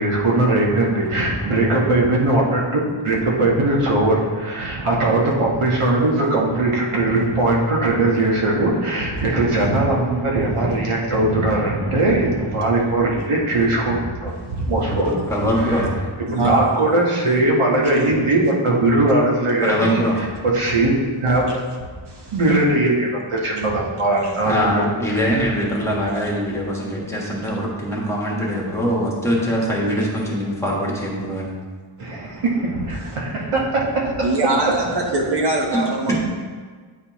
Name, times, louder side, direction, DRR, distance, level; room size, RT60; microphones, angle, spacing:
voice 1, 0.0-2.6 3.0-15.2 15.7-15.9 16.3-20.0 20.5-21.6 22.3-24.8 32.0-34.8, right 2 dB, 85° right, -3 dB, 1.4 m, -20 dB
voice 2, 14.9-15.9 19.6-20.2 24.4-31.5 35.7-35.8 36.1-36.2, equal, 5° left, -4 dB, 1.3 m, -22 dB
voice 3, 16.3-16.7 17.3-17.4 17.8-18.0 22.1-22.3 34.2-36.2, right 2 dB, 55° right, 0 dB, 1.2 m, -23 dB
9.1 x 4.3 x 3.0 m, 1.5 s
wide cardioid pair, 120°, 50 cm